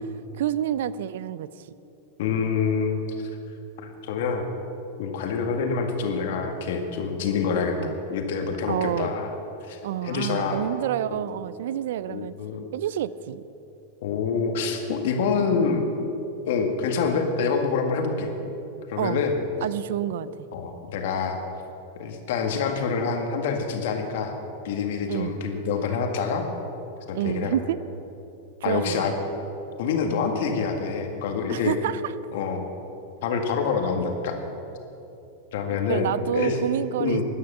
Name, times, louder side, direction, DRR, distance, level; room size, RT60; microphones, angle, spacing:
voice 1, 0.3-1.7 7.8-8.0 8.7-9.2 9.8-12.3 12.7-13.4 19.0-19.2 19.6-20.3 25.1-25.3 27.1-27.8 28.6-29.1 31.5-32.1 35.7-37.2, right 11 dB, 70° right, 17 dB, 0.4 m, -28 dB
voice 2, 2.2-3.3 3.8-4.5 5.0-9.3 9.6-10.7 11.1-11.2 12.1-12.7 14.0-15.9 16.5-18.3 18.9-19.4 20.5-21.4 22.0-24.4 24.6-26.4 27.1-27.6 28.6-29.1 29.8-31.7 32.3-32.6 33.2-34.4 35.5-36.6 37.0-37.2, left 5 dB, 65° left, 4 dB, 1.8 m, -26 dB
13.0 x 9.6 x 6.8 m, 3.0 s
hypercardioid pair, 110°, 0 cm